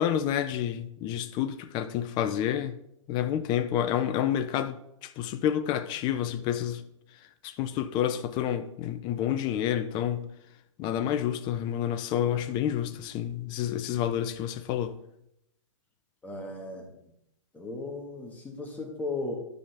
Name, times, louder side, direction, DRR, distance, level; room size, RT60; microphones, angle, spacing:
voice 1, 0.0-2.8 3.1-4.8 5.0-6.8 7.4-10.3 10.8-14.9, left 10 dB, 25° left, 0.6 m, -29 dB
voice 2, 16.2-16.9 17.5-19.3, left 2 dB, 10° left, 1.8 m, -36 dB
12.0 x 5.1 x 3.5 m
hypercardioid pair, 125°, 17 cm